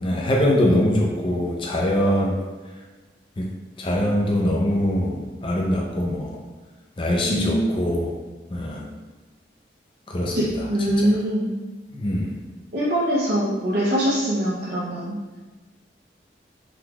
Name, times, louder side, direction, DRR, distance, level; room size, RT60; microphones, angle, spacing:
voice 1, 0.0-2.4 3.4-3.5 3.8-6.4 7.0-8.1 8.5-8.9 10.1-10.7 11.0-11.1 11.9-12.4, left 1 dB, 30° left, -1 dB, 0.4 m, -23 dB
voice 2, 7.2-7.7 10.3-11.5 12.7-15.2, equal, 65° right, -8 dB, 0.6 m, -23 dB
3.7 x 2.3 x 2.9 m, 1.3 s
head